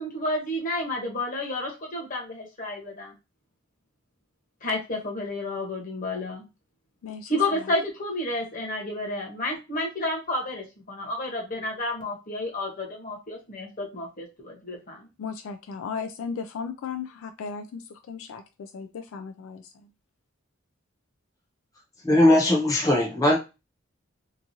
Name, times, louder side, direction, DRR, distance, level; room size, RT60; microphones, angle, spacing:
voice 1, 0.0-3.1 4.6-6.4 7.3-15.1, left 1 dB, 40° left, 1.0 m, -31 dB
voice 2, 15.2-19.9, left 6 dB, 75° left, 0.3 m, -36 dB
voice 3, 22.0-23.4, left 1 dB, 15° left, 0.8 m, -19 dB
2.9 x 2.3 x 2.6 m
head